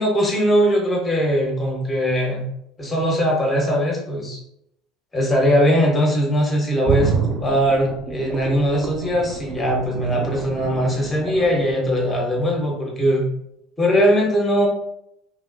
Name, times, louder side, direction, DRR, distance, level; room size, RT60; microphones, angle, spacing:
voice 1, 0.0-2.4 2.8-4.4 5.1-13.3 13.8-14.7, equal, 15° left, -1 dB, 1.2 m, -20 dB
sound 1, 6.8-12.7 13.0-13.1, right 5 dB, 45° right, 0.4 m, -29 dB
2.8 x 2.7 x 2.7 m, 0.76 s
figure-of-eight pair, 70°, 0 cm